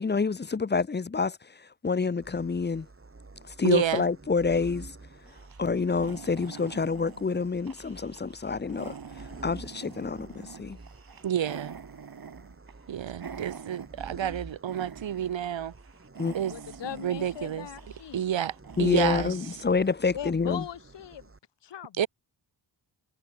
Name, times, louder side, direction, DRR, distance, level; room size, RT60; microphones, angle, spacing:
voice 1, 0.0-1.4 1.8-2.9 3.6-4.9 5.6-8.9 9.4-10.3 10.6-10.8 16.2-16.3 18.8-20.6, left 4 dB, 25° left, 0.6 m, -27 dB
sound 1, 2.2-21.4, right 3 dB, 30° right, 3.9 m, -49 dB
voice 2, 3.6-4.0 11.2-11.8 12.9-15.7 16.3-16.5 17.0-17.7 18.1-19.3 22.0-22.1, right 10 dB, 90° right, 1.0 m, -29 dB
sound 2, 5.3-14.4 14.7-15.5 15.8-20.0, right 6 dB, 50° right, 1.4 m, -46 dB
voice 3, 16.4-18.2 20.1-21.3 21.6-22.1, left 10 dB, 70° left, 0.9 m, -39 dB
wide cardioid pair, 100°, 44 cm